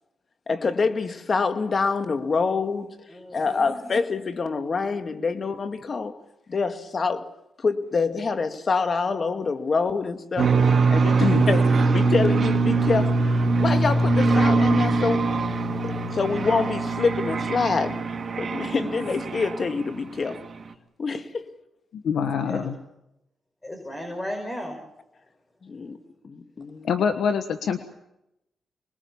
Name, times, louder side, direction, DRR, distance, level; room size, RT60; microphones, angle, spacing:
voice 1, 0.5-3.0 3.3-6.2 6.5-7.3 7.6-10.5 10.9-15.3 15.8-18.1 18.4-20.4 21.0-21.5 25.6-26.0 26.2-26.9, left 4 dB, 45° left, 2.0 m, -26 dB
voice 2, 3.1-3.8 11.4-11.6 18.7-19.0 22.5-22.6 23.6-24.8, equal, 20° left, 5.7 m, -35 dB
sound 1, 10.4-19.9, right 3 dB, 45° right, 2.5 m, -22 dB
voice 3, 11.2-11.6 21.9-22.7 26.8-27.8, left 7 dB, 75° left, 1.4 m, -25 dB
26.0 x 21.0 x 7.2 m
cardioid pair, 75°, 0 cm